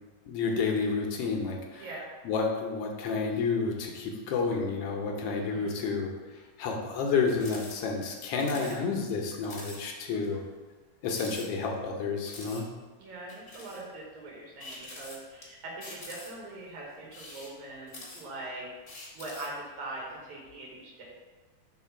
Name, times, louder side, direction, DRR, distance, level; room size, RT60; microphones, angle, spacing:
voice 1, 0.3-1.9 2.2-6.1 6.6-10.4 11.0-12.6, left 4 dB, 70° left, 1 dB, 1.5 m, -30 dB
voice 2, 1.8-2.1 5.3-5.8 8.4-8.9 10.1-10.5 13.0-18.7 19.1-21.0, right 2 dB, 85° right, -4 dB, 2.5 m, -42 dB
sound 1, 7.2-7.7 8.0-8.1 8.4-8.8 9.1-9.2 9.4-9.8 10.2-10.3 11.0-11.9 12.3-12.6 13.3-13.8 14.6-15.4 15.8-16.5 17.0-18.4 18.9-19.6, left 2 dB, 45° left, 1.0 m, -45 dB
5.0 x 3.9 x 5.6 m, 1.3 s
omnidirectional pair, 3.3 m